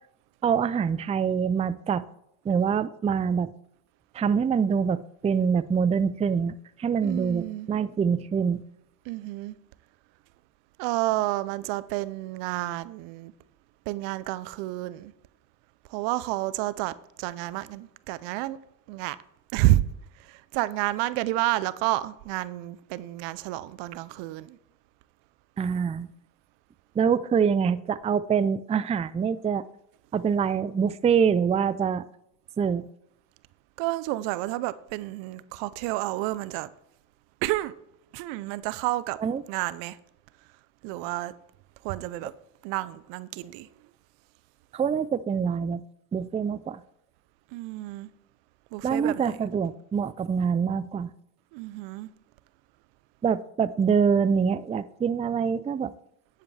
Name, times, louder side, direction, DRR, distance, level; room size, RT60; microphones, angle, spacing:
voice 1, 0.4-2.0 2.5-3.5 4.1-8.6 25.6-26.1 27.0-29.6 30.1-32.0 32.6-32.9 39.2-39.4 44.7-45.8 46.1-46.8 48.8-51.1 53.2-55.9, right 6 dB, 15° right, 0.4 m, -25 dB
voice 2, 7.0-7.7 9.1-9.6 10.8-13.3 13.9-15.1 15.9-18.6 18.9-19.2 19.5-19.8 20.2-24.6 33.8-36.7 37.4-37.7 38.1-39.2 39.5-40.0 40.8-41.3 41.8-42.3 42.6-43.7 47.5-48.1 48.7-49.3 51.5-52.1, right 17 dB, 75° right, 0.7 m, -30 dB
10.0 x 8.1 x 3.3 m
supercardioid pair, 70°, 44 cm